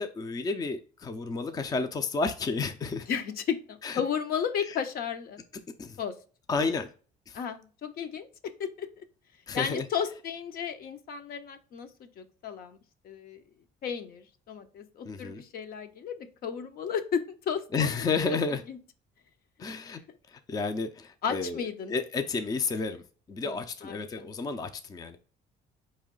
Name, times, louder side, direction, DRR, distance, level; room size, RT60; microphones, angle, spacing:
voice 1, 0.0-3.1 3.8-4.0 4.6-4.8 5.8-6.0 6.5-6.9 7.3-7.4 9.5-9.9 15.0-15.4 17.7-18.6 19.6-20.0 20.3-21.6 21.9-23.0 23.3-25.2, left 4 dB, 20° left, 0.4 m, -31 dB
voice 2, 3.1-5.4 6.0-6.1 7.3-9.0 9.5-12.8 13.0-13.4 13.8-17.9 18.7-18.8 21.2-22.0 23.4-24.3, left 7 dB, 60° left, 0.7 m, -34 dB
4.5 x 3.2 x 3.7 m
cardioid pair, 110°, 17 cm